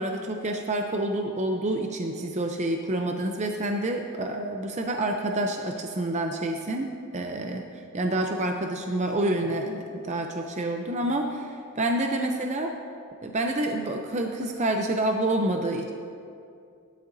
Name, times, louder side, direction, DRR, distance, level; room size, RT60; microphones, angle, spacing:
voice 1, 0.0-12.7 13.2-15.9, right 1 dB, 30° right, 3 dB, 0.6 m, -28 dB
17.5 x 12.0 x 2.7 m, 2.4 s
head